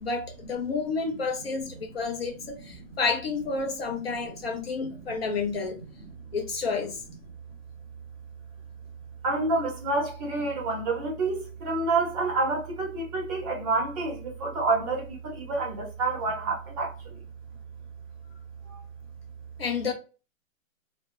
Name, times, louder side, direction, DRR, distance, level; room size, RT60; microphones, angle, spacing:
voice 1, 0.0-5.8 6.3-7.0 19.6-19.9, left 4 dB, 45° left, 0.6 m, -30 dB
voice 2, 9.2-17.2 18.7-18.8, right 3 dB, 25° right, 0.8 m, -28 dB
2.2 x 2.1 x 2.9 m
hypercardioid pair, 140°, 42 cm